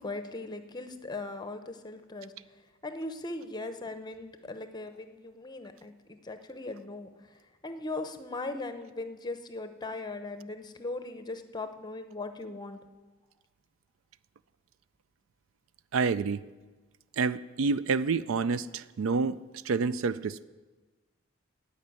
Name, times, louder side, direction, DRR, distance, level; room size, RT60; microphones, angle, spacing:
voice 1, 0.0-2.3 2.8-5.9 6.2-7.1 7.6-12.8, left 2 dB, 20° left, 8 dB, 0.8 m, -39 dB
voice 2, 15.9-16.4 17.2-19.4 19.7-20.5, right 4 dB, 75° right, 16 dB, 0.4 m, -28 dB
15.5 x 5.4 x 9.7 m, 1.3 s
head